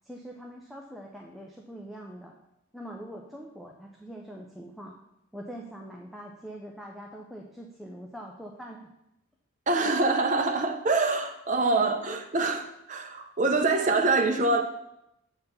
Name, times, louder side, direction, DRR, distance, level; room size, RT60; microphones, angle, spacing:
voice 1, 0.0-2.3 2.7-5.0 5.3-8.9, equal, ahead, -1 dB, 0.5 m, -43 dB
voice 2, 9.7-14.6, right 3 dB, 35° right, 4 dB, 0.7 m, -25 dB
6.9 x 4.2 x 6.7 m, 0.85 s
head